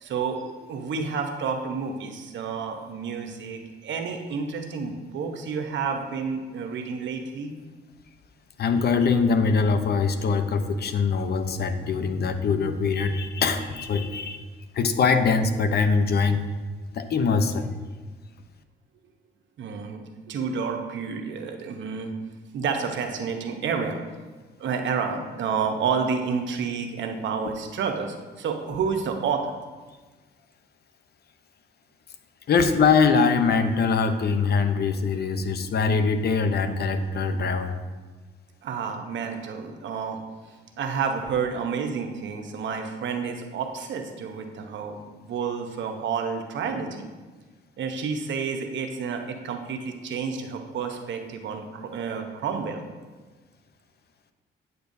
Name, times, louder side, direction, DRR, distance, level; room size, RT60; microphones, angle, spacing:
voice 1, 0.0-7.5 19.6-22.1 22.5-24.0 24.6-29.5 38.6-40.2 40.8-47.1 47.8-52.8, right 6 dB, 70° right, 4 dB, 0.9 m, -30 dB
voice 2, 8.6-14.4 14.7-16.4 16.9-17.7 27.4-27.5 32.5-37.8, left 5 dB, 55° left, 8 dB, 0.7 m, -23 dB
9.3 x 6.8 x 2.7 m, 1.3 s
cardioid pair, 90°, 20 cm